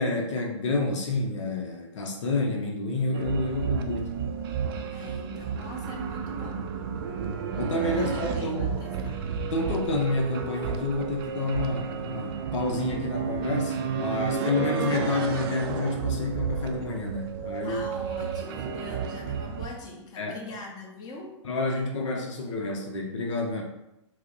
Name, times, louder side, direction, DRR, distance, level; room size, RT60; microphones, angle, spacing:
voice 1, 0.0-4.1 7.6-8.7 9.5-17.8 20.2-20.4 21.4-23.6, left 2 dB, 70° left, 1 dB, 0.6 m, -29 dB
sound 1, 3.1-19.7, right 6 dB, 50° right, 0.4 m, -32 dB
voice 2, 4.9-6.8 7.9-9.2 17.6-21.4, left 2 dB, 25° left, -1 dB, 0.8 m, -42 dB
4.5 x 2.0 x 3.0 m, 0.89 s
hypercardioid pair, 125°, 16 cm